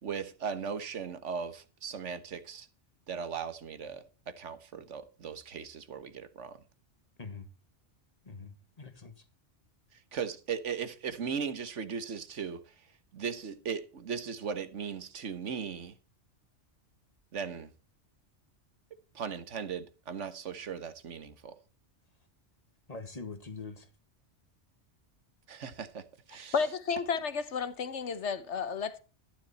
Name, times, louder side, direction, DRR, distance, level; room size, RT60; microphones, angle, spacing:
voice 1, 0.0-2.7 3.1-6.6 9.9-12.6 13.1-15.9 17.3-17.7 19.1-21.5 25.5-26.5, right 6 dB, 90° right, 1.5 m, -38 dB
voice 2, 8.2-9.2 22.9-23.9, left 4 dB, 35° left, 1.7 m, -44 dB
voice 3, 26.5-29.0, left 6 dB, 75° left, 1.4 m, -32 dB
12.5 x 11.0 x 4.2 m
omnidirectional pair, 1.2 m